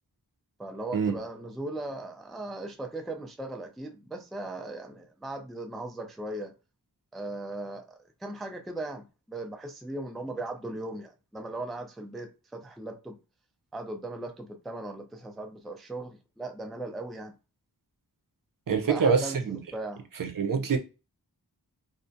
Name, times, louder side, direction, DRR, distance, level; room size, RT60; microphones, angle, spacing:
voice 1, 0.6-6.5 7.1-13.2 13.7-17.3 18.8-20.0, right 2 dB, ahead, 0.3 m, -38 dB
voice 2, 18.7-19.6 20.2-20.8, right 5 dB, 60° right, 0.5 m, -25 dB
2.3 x 2.1 x 2.5 m
wide cardioid pair, 65°, 39 cm